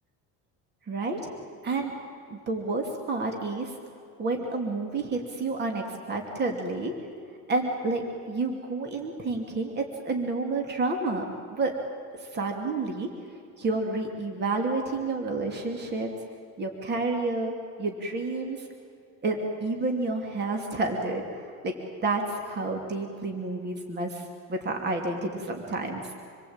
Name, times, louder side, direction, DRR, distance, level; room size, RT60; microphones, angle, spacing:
voice 1, 0.9-1.3 1.6-1.9 2.3-3.7 4.2-6.9 7.5-11.7 12.2-13.1 13.6-16.1 16.6-18.7 19.2-21.7 22.0-26.1, right 3 dB, 30° right, 2 dB, 2.8 m, -30 dB
27.5 x 22.0 x 8.9 m, 2.4 s
cardioid pair, 155°, 36 cm